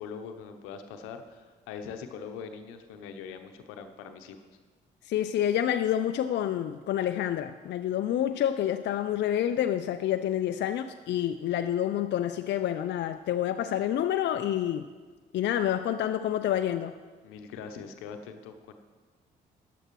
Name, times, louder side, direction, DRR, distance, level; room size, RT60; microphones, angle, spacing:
voice 1, 0.0-4.5 17.2-18.7, left 6 dB, 80° left, 7 dB, 0.8 m, -42 dB
voice 2, 5.1-14.9 15.3-16.9, left 11 dB, 60° left, 9 dB, 0.5 m, -28 dB
14.5 x 10.0 x 3.1 m, 1.4 s
hypercardioid pair, 45°, 21 cm